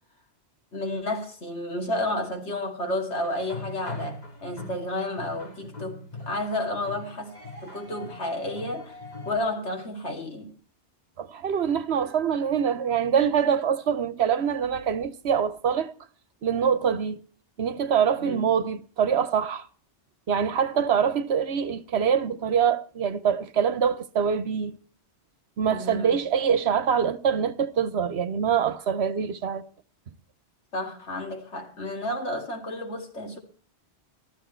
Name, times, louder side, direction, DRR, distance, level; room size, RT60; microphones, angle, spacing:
voice 1, 0.7-7.3 7.6-9.0 9.3-10.5 18.2-18.5 25.7-26.1 30.7-33.4, left 1 dB, 80° left, 2.9 m, -31 dB
sound 1, 3.2-9.4, left 2 dB, 40° left, 3.8 m, -41 dB
voice 2, 11.2-15.9 16.4-17.2 17.6-19.7 20.3-24.8 25.6-29.6, right 7 dB, 70° right, 1.1 m, -24 dB
14.0 x 12.5 x 4.4 m
omnidirectional pair, 1.1 m